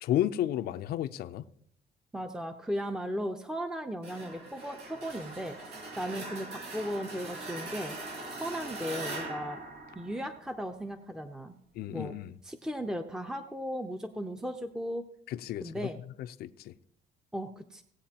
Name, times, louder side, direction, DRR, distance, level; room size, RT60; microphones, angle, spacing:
voice 1, 0.0-1.4 11.7-12.4 15.3-15.9 16.2-16.7, left 12 dB, 70° left, 0.6 m, -32 dB
voice 2, 2.1-8.0 8.3-9.6 10.0-11.5 11.9-12.1 12.4-15.1 15.6-16.0 17.3-17.8, equal, 5° right, 0.7 m, -36 dB
sound 1, 4.0-10.7, right 2 dB, 75° right, 2.5 m, -41 dB
18.5 x 8.3 x 2.9 m
cardioid pair, 110°, 17 cm